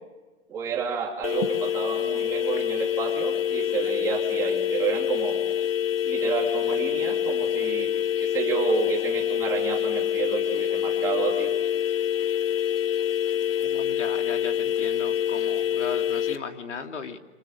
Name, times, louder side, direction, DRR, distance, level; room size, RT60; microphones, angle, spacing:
voice 1, 0.5-5.4 6.0-7.9 8.2-11.5, right 6 dB, 10° right, -1 dB, 2.9 m, -30 dB
sound 1, 1.2-16.4, left 9 dB, 55° left, 1.8 m, -26 dB
voice 2, 13.6-17.2, left 5 dB, 75° left, 5 dB, 3.1 m, -37 dB
28.5 x 26.0 x 6.6 m, 1.3 s
hypercardioid pair, 180°, 36 cm